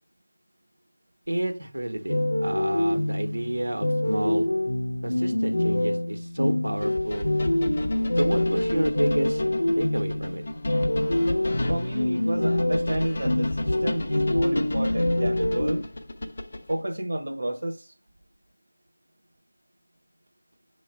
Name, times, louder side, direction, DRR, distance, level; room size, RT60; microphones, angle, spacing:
voice 1, 1.3-4.5 5.0-7.3 8.2-10.4, right 1 dB, 90° right, 1.3 m, -30 dB
sound 1, 2.1-15.8, left 1 dB, 80° left, 0.5 m, -26 dB
sound 2, 6.8-16.8, left 1 dB, 35° left, 0.8 m, -33 dB
voice 2, 11.7-15.9 16.7-17.9, right 1 dB, 55° right, 0.9 m, -31 dB
7.6 x 3.1 x 4.4 m
figure-of-eight pair, 175°, 0 cm